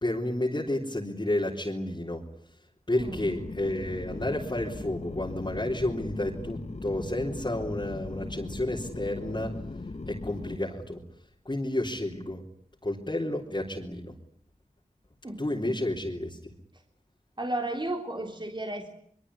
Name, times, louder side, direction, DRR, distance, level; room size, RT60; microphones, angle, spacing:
voice 1, 0.0-2.2 2.9-9.5 10.1-11.0 11.5-12.4 12.8-14.1 15.4-16.4, left 1 dB, 35° left, -4 dB, 3.6 m, -31 dB
sound 1, 3.0-10.6, left 3 dB, 50° left, 1.6 m, -39 dB
voice 2, 15.2-15.8 17.4-18.9, right 1 dB, 35° right, 3 dB, 3.4 m, -34 dB
24.0 x 23.0 x 9.8 m, 0.64 s
wide cardioid pair, 60°, 14 cm